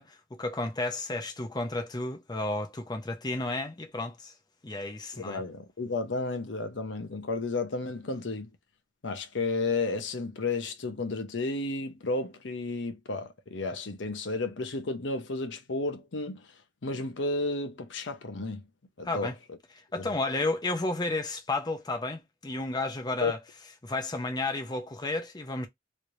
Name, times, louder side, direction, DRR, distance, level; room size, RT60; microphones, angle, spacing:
voice 1, 0.0-4.3 4.6-5.4 19.0-19.4 19.9-23.4 23.8-25.7, left 2 dB, 20° left, 0.7 m, -32 dB
voice 2, 5.2-8.5 9.0-16.4 16.8-18.6 19.0-19.3 20.0-20.1 23.2-23.3, left 3 dB, 70° left, 0.8 m, -32 dB
3.2 x 3.1 x 2.6 m
head